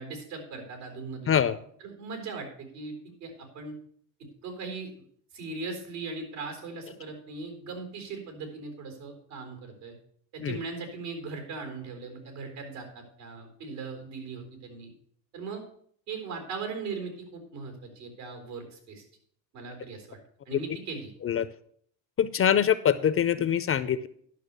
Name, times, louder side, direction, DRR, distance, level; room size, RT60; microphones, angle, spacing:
voice 1, 0.0-1.4 1.8-2.9 3.2-3.7 4.4-4.9 5.3-9.9 10.3-14.9 15.3-15.6 16.1-19.0 19.5-20.2 20.5-21.1, right 4 dB, 85° right, 4 dB, 4.1 m, -39 dB
voice 2, 1.3-1.6 10.4-10.6 20.5-20.6 21.2-21.5 22.2-24.1, left 9 dB, 30° left, 14 dB, 0.5 m, -24 dB
11.0 x 6.1 x 6.7 m, 0.62 s
supercardioid pair, 95°, 49 cm